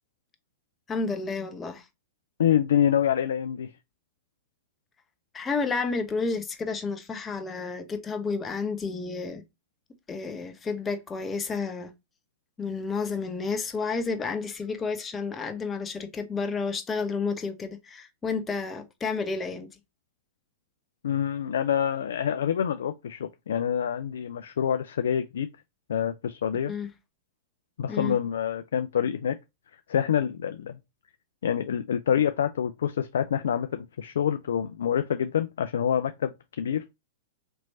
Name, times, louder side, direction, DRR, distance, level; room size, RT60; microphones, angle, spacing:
voice 1, 0.9-1.8 5.3-9.4 10.1-11.9 12.6-19.7 26.7-26.9 27.9-28.1, left 4 dB, 20° left, 0.9 m, -31 dB
voice 2, 2.4-3.7 21.0-25.5 25.9-26.7 27.8-29.4 29.9-30.8 31.4-36.9, left 9 dB, 75° left, 0.4 m, -26 dB
4.4 x 3.0 x 2.6 m
hypercardioid pair, 105°, 0 cm